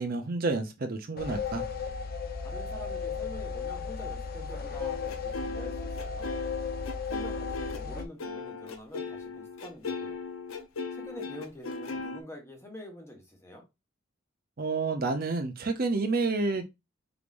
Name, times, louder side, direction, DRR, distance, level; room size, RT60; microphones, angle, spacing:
voice 1, 0.0-1.6 14.6-16.6, right 3 dB, 45° right, 0.6 m, -29 dB
sound 1, 1.2-8.0, left 5 dB, 45° left, 0.8 m, -35 dB
voice 2, 2.4-6.4 7.1-10.2 10.9-13.6, left 1 dB, 10° left, 1.2 m, -46 dB
sound 2, 4.8-12.2, left 3 dB, 80° left, 0.7 m, -37 dB
4.8 x 3.4 x 2.5 m
head